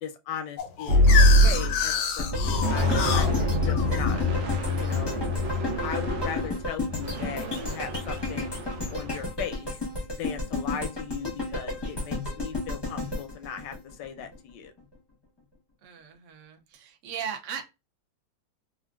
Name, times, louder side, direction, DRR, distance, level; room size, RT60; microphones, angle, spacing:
voice 1, 0.0-4.2 4.8-5.3 5.8-8.6 8.9-9.7 10.1-14.7, left 8 dB, 70° left, 1.1 m, -38 dB
sound 1, 0.6-5.4, left 8 dB, 90° left, 1.4 m, -29 dB
sound 2, 0.9-1.9 2.3-9.3, left 1 dB, 80° right, 1.6 m, -24 dB
sound 3, 2.2-14.4 14.8-14.9, left 2 dB, 20° left, 0.6 m, -33 dB
voice 2, 6.9-7.5 15.8-17.6, right 7 dB, 65° right, 0.7 m, -38 dB
3.7 x 2.3 x 2.3 m
omnidirectional pair, 2.2 m